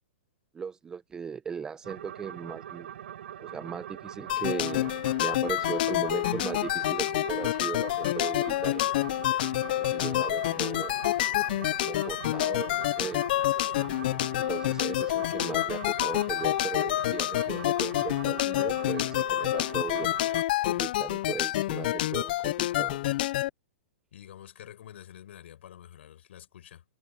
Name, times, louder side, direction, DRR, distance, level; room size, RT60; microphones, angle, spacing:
voice 1, 0.5-2.9 3.4-4.9 5.2-8.9 9.9-10.9 11.8-13.2 14.4-20.1 20.6-23.0, right 6 dB, 10° right, 0.7 m, -37 dB
sound 1, 1.8-20.4, right 10 dB, 65° right, 5.2 m, -43 dB
sound 2, 4.3-23.5, left 15 dB, 45° left, 0.4 m, -28 dB
voice 2, 24.1-26.8, left 11 dB, 65° left, 4.6 m, -48 dB
hypercardioid pair, 160°, 7 cm